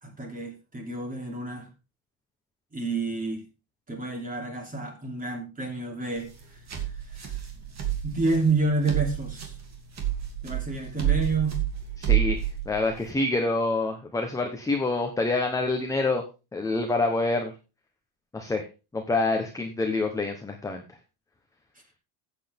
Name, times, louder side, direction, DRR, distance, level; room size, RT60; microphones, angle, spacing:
voice 1, 0.0-1.7 2.7-3.4 3.9-6.3 7.1-7.4 8.0-9.5 10.4-11.6, right 3 dB, 15° right, 2 dB, 3.0 m, -29 dB
sound 1, 6.2-13.1, right 11 dB, 35° right, 2.7 m, -29 dB
voice 2, 12.0-16.2 16.5-17.5 18.3-18.6 18.9-20.8, left 2 dB, 5° left, 4 dB, 0.9 m, -27 dB
14.5 x 8.1 x 3.5 m, 0.30 s
cardioid pair, 165°, 49 cm